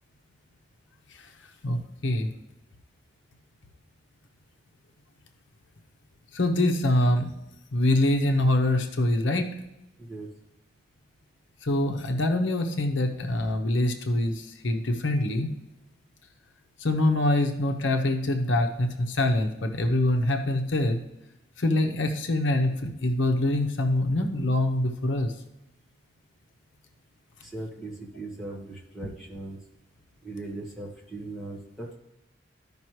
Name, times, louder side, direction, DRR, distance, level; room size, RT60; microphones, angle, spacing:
voice 1, 1.6-2.3 6.3-7.3 7.7-9.5 11.6-15.5 16.8-21.0 21.6-25.3, left 1 dB, 75° left, 4 dB, 0.8 m, -24 dB
voice 2, 27.4-29.6 30.2-32.0, right 2 dB, ahead, -4 dB, 1.7 m, -39 dB
13.5 x 5.4 x 3.1 m, 0.93 s
head